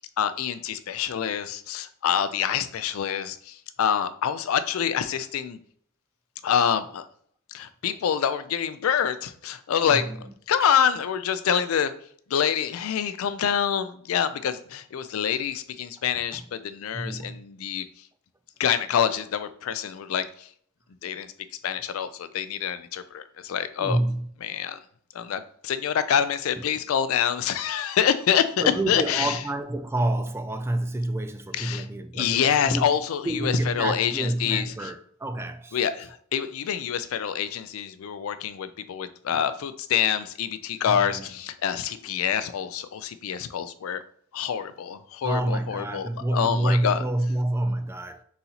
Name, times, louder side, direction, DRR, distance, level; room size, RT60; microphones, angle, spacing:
voice 1, 0.0-5.6 6.4-7.0 7.5-10.1 10.5-11.9 12.3-17.9 18.6-20.5 21.0-21.3 21.6-24.0 24.4-24.8 25.1-29.4 31.5-31.9 32.1-34.9 35.7-44.0 44.3-47.0, left 8 dB, 85° left, 0.4 m, -26 dB
voice 2, 9.8-10.2 10.6-10.7 16.3-16.4 16.9-17.4 23.8-24.3 28.6-32.8 33.2-35.8 40.8-41.4 45.2-48.2, right 1 dB, 10° right, 0.3 m, -28 dB
4.0 x 3.9 x 2.9 m
head